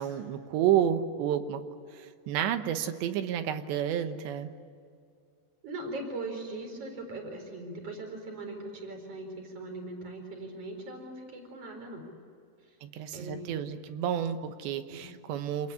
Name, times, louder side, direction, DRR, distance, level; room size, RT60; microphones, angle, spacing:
voice 1, 0.0-1.6 1.9-4.5 12.8-15.7, right 10 dB, 85° right, 9 dB, 3.3 m, -30 dB
voice 2, 5.6-12.0 12.6-12.8 13.1-13.7 14.9-15.0, right 2 dB, 35° right, 4 dB, 5.0 m, -40 dB
27.5 x 20.0 x 9.8 m, 2.3 s
omnidirectional pair, 5.1 m